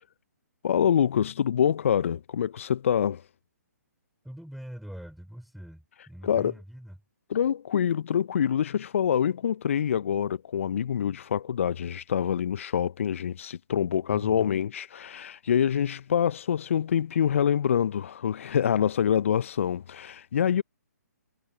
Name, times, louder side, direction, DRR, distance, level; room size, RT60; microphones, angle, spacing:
voice 1, 0.6-3.2 6.2-6.5 7.3-20.6, left 8 dB, 50° left, 0.9 m, -26 dB
voice 2, 4.2-7.0 14.1-14.5, equal, ahead, 5.5 m, -43 dB
figure-of-eight pair, 130°, 9 cm